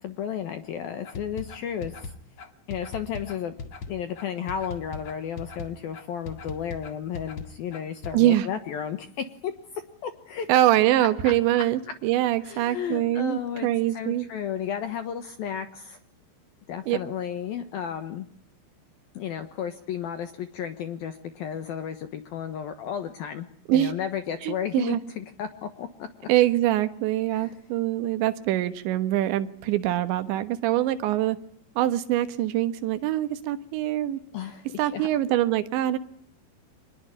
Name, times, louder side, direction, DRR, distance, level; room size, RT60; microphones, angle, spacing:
voice 1, 0.0-2.1 2.7-3.5 3.9-10.5 11.6-11.7 12.4-16.0 16.7-18.3 19.1-26.3 27.3-27.5 34.3-35.1, left 8 dB, 70° left, 9 dB, 2.4 m, -33 dB
sound 1, 1.0-8.1, left 4 dB, 50° left, 2.1 m, -39 dB
voice 2, 8.1-8.5 10.5-14.3 16.9-17.0 23.7-23.9 24.4-25.0 26.3-31.4 31.8-34.2 34.8-36.0, right 13 dB, 70° right, 11 dB, 3.4 m, -24 dB
25.5 x 21.0 x 9.9 m, 0.64 s
omnidirectional pair, 5.7 m